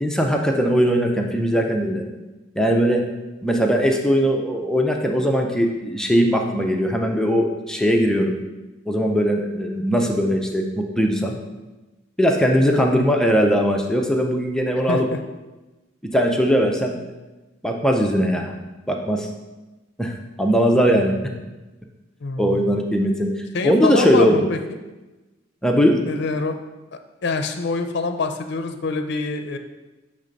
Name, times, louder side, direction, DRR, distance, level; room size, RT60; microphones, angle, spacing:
voice 1, 0.0-2.0 2.6-3.0 3.4-8.4 8.9-11.3 12.2-15.0 16.1-17.0 17.6-18.5 18.9-19.3 20.0-21.2 22.4-23.3 23.6-24.5 25.6-26.0, equal, 5° left, 2 dB, 0.5 m, -20 dB
voice 2, 12.6-13.0 14.9-15.2 22.2-22.7 23.5-24.6 26.1-26.6 27.2-29.6, left 3 dB, 60° left, 7 dB, 0.5 m, -25 dB
6.9 x 3.3 x 5.2 m, 1.1 s
head